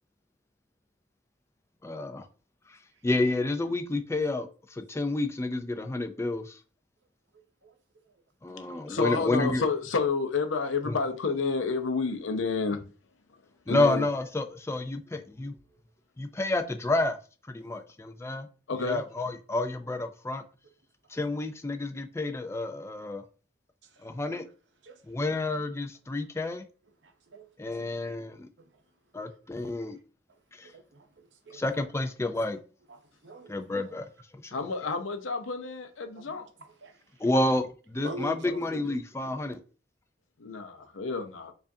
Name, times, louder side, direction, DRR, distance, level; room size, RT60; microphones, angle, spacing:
voice 1, 1.8-2.2 2.7-2.8 3.0-6.6 8.4-9.6 10.9-11.0 13.7-15.5 16.2-17.2 17.5-18.5 18.8-20.4 21.1-23.2 24.0-24.4 25.1-26.6 27.6-28.5 29.1-30.0 30.5-30.7 31.5-32.6 33.5-34.1 34.3-34.5 37.2-39.6, left 2 dB, 15° left, 0.3 m, -30 dB
voice 2, 7.3-7.8 8.1-8.2 15.7-15.8 21.1-21.2 23.8-24.4 24.8-25.0 27.0-28.0 28.6-28.8 29.2-29.7 30.3-31.6 32.9-33.5 36.2-37.3 38.0-39.0, right 1 dB, 65° right, 0.7 m, -46 dB
voice 3, 8.9-12.9 13.7-14.1 18.7-19.0 34.5-36.5 40.4-41.5, left 4 dB, 90° left, 0.6 m, -30 dB
4.7 x 2.5 x 2.6 m
head